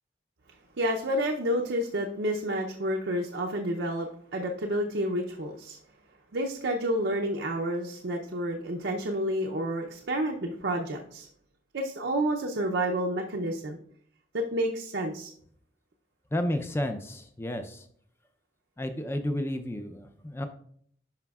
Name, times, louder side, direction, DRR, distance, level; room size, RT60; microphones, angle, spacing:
voice 1, 0.8-5.8 6.3-11.3 11.7-13.8 14.3-15.3, right 1 dB, 75° right, 1 dB, 0.6 m, -29 dB
voice 2, 16.3-17.8 18.8-20.5, left 1 dB, 15° left, 7 dB, 0.5 m, -31 dB
11.5 x 5.0 x 2.4 m, 0.63 s
head